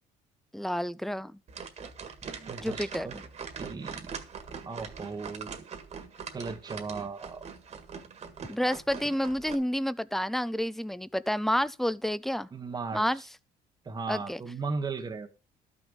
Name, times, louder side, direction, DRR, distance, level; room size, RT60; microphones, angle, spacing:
voice 1, 0.5-1.3 2.6-3.1 8.5-12.5 12.9-13.2 14.1-14.4, equal, ahead, 0.4 m, -29 dB
sound 1, 1.5-9.5, right 6 dB, 40° right, 1.8 m, -42 dB
voice 2, 2.2-3.2 3.6-4.1 4.7-5.7 6.3-7.4 12.5-13.0 13.8-15.3, right 4 dB, 25° right, 1.0 m, -37 dB
12.5 x 6.2 x 5.2 m
cardioid pair, 110°, 17 cm